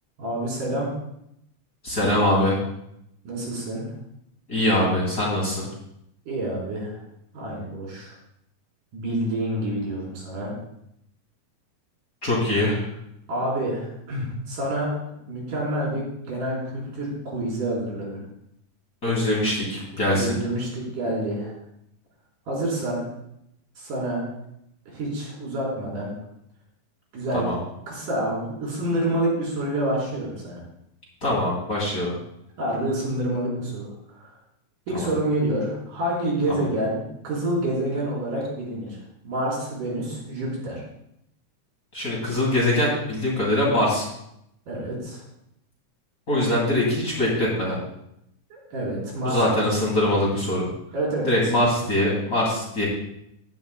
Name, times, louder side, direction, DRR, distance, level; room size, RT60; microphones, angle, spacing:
voice 1, 0.2-0.9 3.3-3.8 6.3-7.0 7.3-8.2 8.9-10.5 13.3-14.9 15.3-18.2 20.1-21.5 22.5-23.0 23.8-24.2 24.9-26.1 27.1-27.5 27.9-30.6 32.6-34.3 34.9-39.0 39.2-40.8 44.7-45.2 48.5-49.6 50.9-51.7, right 1 dB, 80° right, -5 dB, 5.5 m, -28 dB
voice 2, 1.8-2.6 4.5-5.7 12.2-12.8 19.0-20.4 27.3-27.6 31.2-32.1 34.9-35.1 36.5-36.7 41.9-44.1 46.3-47.8 49.2-50.7 51.2-52.8, left 1 dB, 30° left, -5 dB, 2.7 m, -23 dB
15.0 x 11.0 x 2.2 m, 0.78 s
omnidirectional pair, 3.7 m